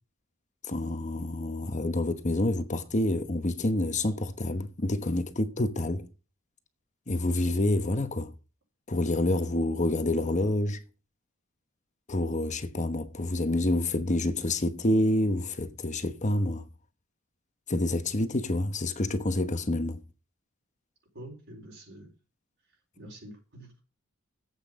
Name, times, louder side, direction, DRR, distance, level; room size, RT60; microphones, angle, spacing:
voice 1, 0.7-6.1 7.1-8.3 8.9-10.8 12.1-16.6 17.7-20.0, left 1 dB, 35° left, 1.1 m, -28 dB
voice 2, 21.1-22.1 23.0-23.8, right 1 dB, 60° right, 4.3 m, -46 dB
10.5 x 8.2 x 5.3 m
head